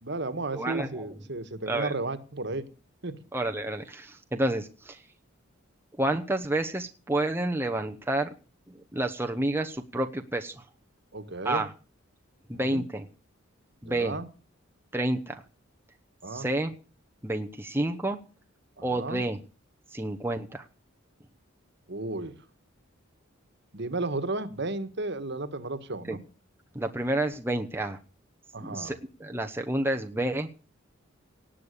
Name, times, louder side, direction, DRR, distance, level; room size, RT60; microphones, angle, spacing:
voice 1, 0.0-2.6 3.0-3.2 11.1-11.6 12.5-12.8 13.8-14.2 16.2-16.5 18.8-19.2 21.9-22.3 23.7-26.2 28.5-28.9, right 2 dB, 55° right, 12 dB, 1.6 m, -33 dB
voice 2, 0.5-1.1 1.7-1.9 3.3-5.0 6.0-8.3 8.9-10.5 11.4-11.7 12.5-13.1 13.8-14.2 14.9-15.4 16.3-16.7 17.2-18.2 18.8-19.4 19.9-20.7 26.1-26.2 26.7-28.0 28.6-30.7, right 1 dB, 10° right, 4 dB, 1.0 m, -29 dB
18.0 x 8.6 x 6.7 m, 0.36 s
head